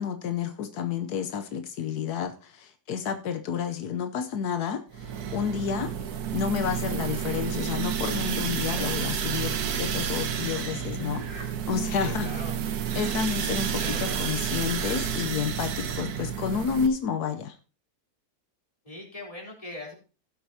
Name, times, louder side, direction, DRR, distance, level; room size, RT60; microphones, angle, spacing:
voice 1, 0.0-5.9 6.3-12.3 12.9-17.6, left 7 dB, 85° left, 8 dB, 1.3 m, -30 dB
sound 1, 4.9-16.9, right 8 dB, 80° right, 1.5 m, -30 dB
sound 2, 7.7-15.3, right 2 dB, 45° right, 4.3 m, -48 dB
voice 2, 11.9-12.6 13.7-14.2 18.9-19.9, left 1 dB, 20° left, -2 dB, 3.7 m, -40 dB
16.5 x 7.8 x 2.8 m, 0.35 s
omnidirectional pair, 1.6 m